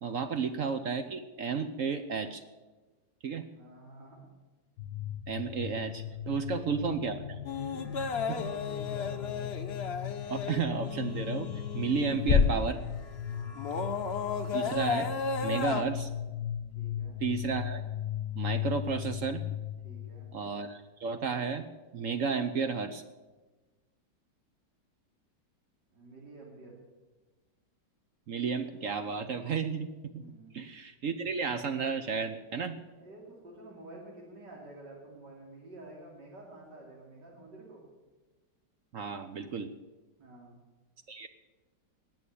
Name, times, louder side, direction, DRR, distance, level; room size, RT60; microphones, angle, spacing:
voice 1, 0.0-2.4 3.2-3.5 5.3-7.4 10.3-11.5 11.7-12.8 14.5-15.1 15.4-16.1 17.2-17.8 18.4-19.4 20.3-21.7 21.9-23.0 28.3-30.3 30.5-32.8 38.9-39.7 41.1-41.3, right 5 dB, 60° right, 9 dB, 0.9 m, -32 dB
voice 2, 3.6-4.2 6.3-6.8 7.7-9.5 11.8-12.1 13.2-13.5 16.8-17.2 19.8-20.3 25.9-26.7 30.1-30.6 33.0-37.8 40.2-40.6, right 2 dB, 75° right, -3 dB, 3.6 m, -50 dB
sound 1, 4.8-20.7, left 11 dB, 75° left, 1.4 m, -38 dB
sound 2, 7.4-12.6 13.1-15.8, left 5 dB, 45° left, 0.9 m, -32 dB
19.5 x 6.9 x 8.4 m, 1.2 s
omnidirectional pair, 1.9 m